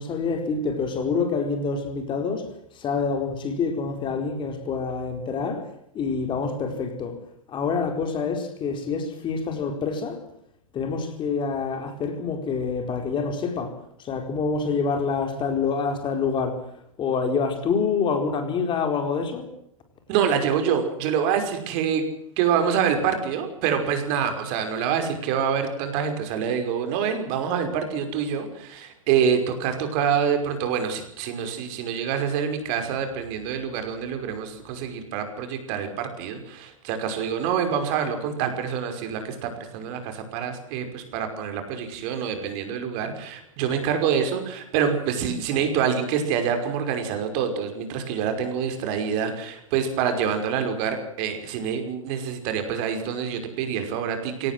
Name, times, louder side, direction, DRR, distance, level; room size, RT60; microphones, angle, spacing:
voice 1, 0.0-2.5 2.7-5.7 5.9-7.2 7.5-10.2 10.7-16.6 17.0-19.5, left 5 dB, 30° left, 4.4 m, -26 dB
voice 2, 20.1-22.0 22.4-54.5, right 7 dB, 45° right, 5.6 m, -26 dB
23.0 x 18.5 x 7.8 m
hypercardioid pair, 110°, 17 cm